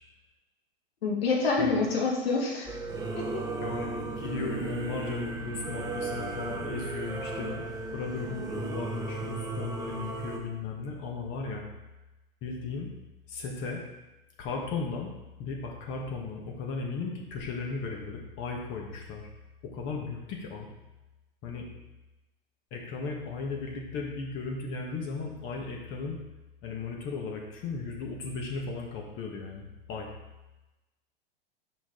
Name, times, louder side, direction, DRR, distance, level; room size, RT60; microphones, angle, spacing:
voice 1, 1.0-2.7 3.1-3.4, left 4 dB, 80° left, -1 dB, 1.7 m, -27 dB
Singing / Musical instrument, 2.6-10.4, right 3 dB, 15° right, 0.9 m, -35 dB
voice 2, 3.6-7.6 7.9-11.7 12.4-12.9 13.3-13.8 14.4-15.1 15.4-19.3 19.6-20.7 21.4-21.7 22.7-26.2 26.6-30.1, left 4 dB, 40° left, 0 dB, 1.5 m, -36 dB
6.2 x 5.0 x 3.8 m, 1.0 s
hypercardioid pair, 110°, 30 cm